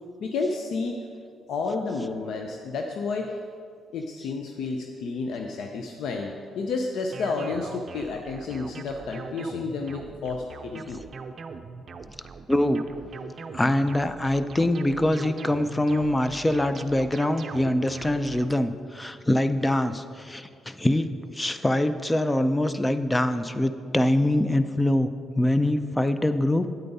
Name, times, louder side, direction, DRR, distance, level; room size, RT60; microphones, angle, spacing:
voice 1, 0.2-1.0 1.5-3.4 3.9-11.0, left 4 dB, 75° left, 3 dB, 0.6 m, -31 dB
sound 1, 7.1-18.5, right 5 dB, 45° right, 0.5 m, -41 dB
voice 2, 12.5-12.8 13.5-26.7, left 1 dB, 10° left, 11 dB, 0.5 m, -24 dB
9.1 x 8.8 x 4.1 m, 2.3 s
cardioid pair, 90°, 0 cm